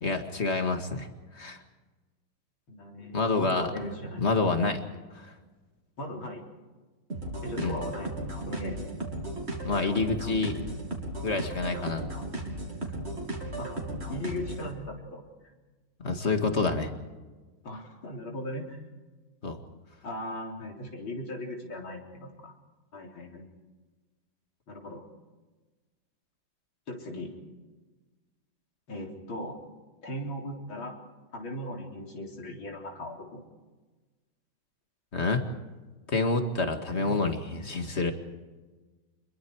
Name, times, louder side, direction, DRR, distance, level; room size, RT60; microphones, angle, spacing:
voice 1, 0.0-1.1 1.3-1.6 3.1-3.7 4.2-4.8 5.1-5.3 7.6-7.7 9.6-10.6 11.2-12.0 16.0-16.9 19.4-19.6 35.1-35.5 36.1-38.1, left 3 dB, 35° left, 6 dB, 2.2 m, -27 dB
voice 2, 2.7-4.2 6.0-6.4 7.4-8.1 8.5-8.8 13.6-13.7 14.1-15.2 17.6-18.8 20.0-22.5 22.9-23.5 24.7-25.1 26.9-27.3 28.9-29.6 30.0-30.9 31.3-33.4 36.9-37.2, left 1 dB, 85° left, 0 dB, 4.5 m, -38 dB
sound 1, 7.1-14.7, right 1 dB, 30° right, 3.4 m, -35 dB
26.5 x 22.0 x 4.8 m, 1.3 s
omnidirectional pair, 2.1 m